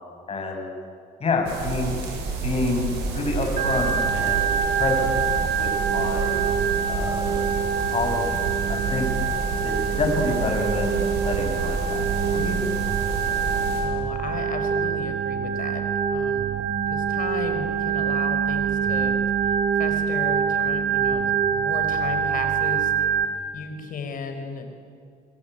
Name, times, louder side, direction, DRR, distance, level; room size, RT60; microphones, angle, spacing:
voice 1, 0.3-0.7 1.2-1.9 2.4-5.1 5.6-6.5 6.9-7.5 7.9-9.1 9.6-12.7, left 3 dB, 35° left, 2 dB, 7.1 m, -28 dB
sound 1, 1.4-13.8, right 4 dB, 85° right, 7.7 m, -30 dB
Organ, 3.6-23.3, right 7 dB, 55° right, 2.9 m, -25 dB
voice 2, 13.8-15.8 16.1-16.5 16.9-19.2 19.4-23.2 23.5-24.7, left 5 dB, 55° left, 6 dB, 5.2 m, -35 dB
25.0 x 23.0 x 9.3 m, 2.4 s
cardioid pair, 110°, 17 cm